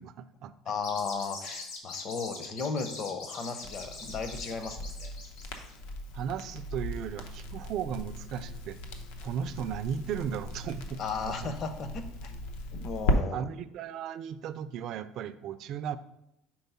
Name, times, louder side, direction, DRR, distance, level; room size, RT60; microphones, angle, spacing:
voice 1, 0.0-0.5 6.1-8.8 9.2-11.0 11.3-11.5 13.3-16.0, right 8 dB, 45° right, 12 dB, 0.3 m, -36 dB
voice 2, 0.7-5.1 11.0-12.3 12.8-13.5, left 5 dB, 35° left, 8 dB, 0.6 m, -35 dB
sound 1, 0.8-5.8, left 3 dB, 65° left, 1.4 m, -42 dB
Crackle, 3.6-13.2, left 1 dB, 90° left, 0.7 m, -36 dB
4.5 x 4.3 x 5.4 m, 0.83 s
cardioid pair, 170°, 0 cm